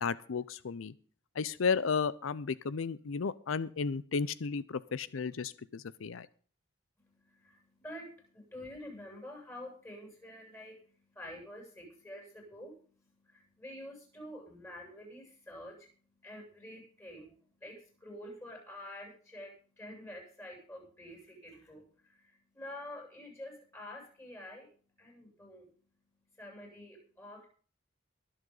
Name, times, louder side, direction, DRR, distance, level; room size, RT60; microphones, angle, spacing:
voice 1, 0.0-0.9 1.4-6.3, left 5 dB, 85° left, 17 dB, 0.5 m, -33 dB
voice 2, 7.0-12.8 13.2-15.9 16.2-17.3 17.6-24.7 25.0-25.7 26.4-27.5, left 1 dB, 15° left, 0 dB, 7.6 m, -48 dB
23.0 x 7.9 x 3.9 m, 0.43 s
head